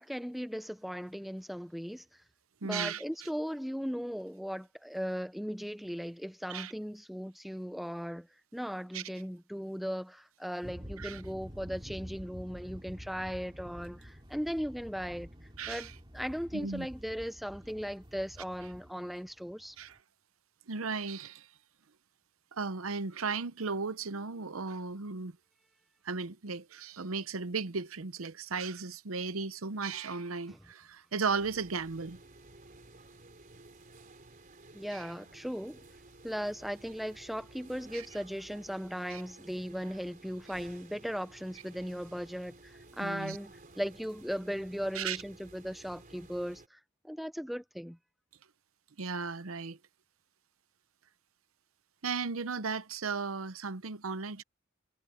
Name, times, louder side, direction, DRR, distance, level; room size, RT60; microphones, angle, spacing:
voice 1, 0.0-2.0 2.6-8.3 8.5-15.3 15.7-19.7 34.7-35.8 36.2-42.5 42.9-46.6 47.0-48.0, equal, ahead, 0.7 m, -37 dB
voice 2, 2.6-3.0 6.5-6.7 8.9-9.0 11.0-11.2 15.6-15.9 16.5-16.9 19.8-20.0 20.7-21.5 22.5-25.3 26.0-32.2 34.9-35.1 37.9-38.1 39.1-39.2 43.0-43.4 44.9-45.2 49.0-49.8 52.0-54.4, right 5 dB, 90° right, 0.8 m, -35 dB
sound 1, 10.6-20.0, equal, 25° right, 3.8 m, -49 dB
sound 2, 31.3-46.7, right 2 dB, 40° right, 3.9 m, -55 dB
head